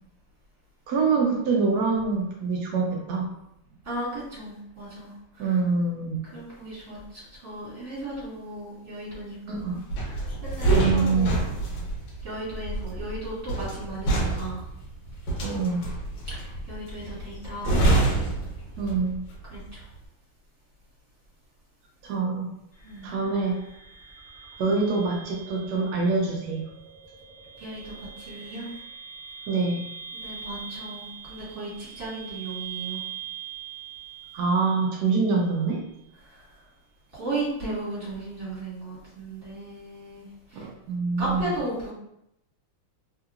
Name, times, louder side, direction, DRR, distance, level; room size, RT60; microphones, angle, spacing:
voice 1, 0.9-3.3 5.4-6.2 9.5-9.8 10.7-11.3 15.4-15.9 18.8-19.2 22.0-22.5 23.0-23.6 24.6-26.6 29.5-29.8 34.3-35.8 40.6-41.5, right 4 dB, 85° right, -1 dB, 0.8 m, -25 dB
voice 2, 3.8-5.6 6.3-11.5 12.2-14.7 16.3-17.9 19.5-19.8 22.8-23.1 27.6-28.7 30.1-33.0 36.2-36.5 37.1-40.7 41.2-41.9, right 2 dB, 35° right, -8 dB, 1.8 m, -36 dB
sound 1, 9.9-19.2 19.5-19.8, right 2 dB, 70° left, 1.6 m, -26 dB
sound 2, 22.7-35.7, right 7 dB, 40° left, 1.0 m, -42 dB
3.6 x 2.8 x 2.4 m, 0.80 s
omnidirectional pair, 2.4 m